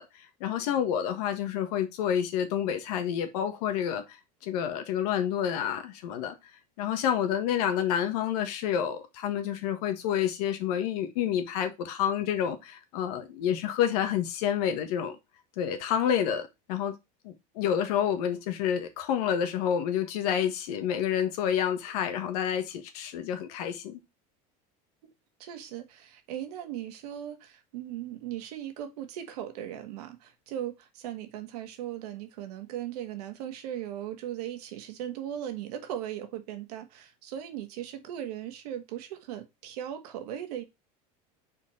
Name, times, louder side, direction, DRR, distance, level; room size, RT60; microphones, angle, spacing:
voice 1, 0.0-4.0 4.4-6.4 6.8-15.2 15.6-16.9 17.2-24.0, left 9 dB, 75° left, 1.5 m, -29 dB
voice 2, 25.4-40.6, right 11 dB, 85° right, 1.5 m, -38 dB
4.7 x 4.2 x 5.5 m
supercardioid pair, 110°, 20 cm